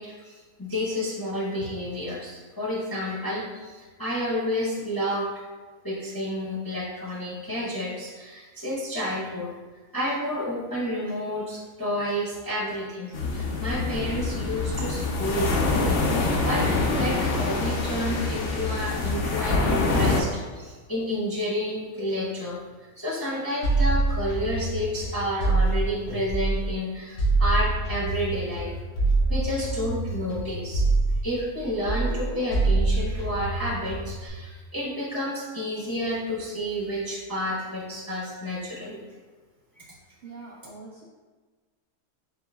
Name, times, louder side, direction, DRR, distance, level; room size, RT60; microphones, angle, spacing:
voice 1, 0.0-5.3 5.8-9.5 9.9-15.7 16.1-16.7 16.9-22.6 23.0-28.7 29.3-30.8 31.2-39.0 39.7-39.8, equal, 20° left, -7 dB, 0.6 m, -30 dB
sound 1, 13.1-20.2, left 3 dB, 70° left, 0.5 m, -25 dB
sound 2, 23.6-26.7 27.2-31.6 31.9-34.3, right 3 dB, 90° left, 1.6 m, -25 dB
voice 2, 40.2-41.0, right 3 dB, 60° right, -6 dB, 0.7 m, -43 dB
4.5 x 4.0 x 2.3 m, 1.4 s
omnidirectional pair, 1.6 m